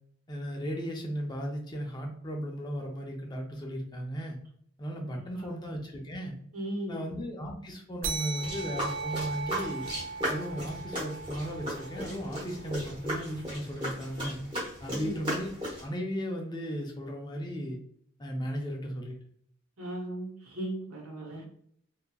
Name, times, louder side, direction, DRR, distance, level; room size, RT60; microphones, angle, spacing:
voice 1, 0.3-4.4 4.8-6.3 6.9-9.8 10.3-14.4 14.8-15.5 15.8-17.8 18.2-19.2, equal, 20° left, 1 dB, 0.4 m, -36 dB
voice 2, 5.1-5.5 6.5-7.0 14.9-15.2 19.8-21.4, right 1 dB, 85° right, 0 dB, 0.9 m, -37 dB
sound 1, 8.0-12.9, right 4 dB, 55° right, 0.3 m, -38 dB
sound 2, 8.4-15.9, equal, 20° right, 1.0 m, -36 dB
2.8 x 2.3 x 2.2 m, 0.66 s
head